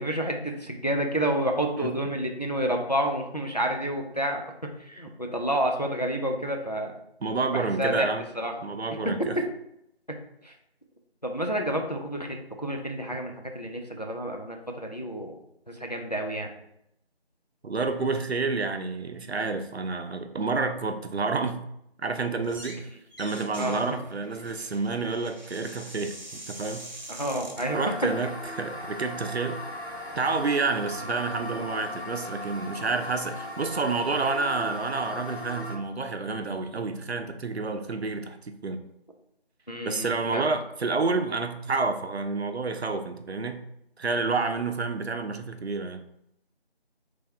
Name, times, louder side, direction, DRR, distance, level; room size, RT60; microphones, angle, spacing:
voice 1, 0.0-4.4 4.8-6.9 7.5-8.1 8.3-8.5 10.4-10.5 11.2-15.4 15.7-16.5 23.5-23.8 27.1-27.9 39.7-40.5, right 1 dB, 40° left, 2 dB, 0.5 m, -29 dB
voice 2, 7.2-8.2 8.6-9.4 17.6-21.7 22.0-22.9 23.2-26.9 27.7-29.6 30.2-38.8 39.8-43.6 44.0-46.0, right 4 dB, 85° right, 7 dB, 0.6 m, -29 dB
sound 1, 22.4-22.8 23.1-27.7, right 1 dB, 45° right, 0.7 m, -44 dB
sound 2, 27.6-35.8, left 1 dB, 85° left, 1.0 m, -38 dB
3.9 x 3.4 x 3.4 m, 0.78 s
figure-of-eight pair, 175°, 31 cm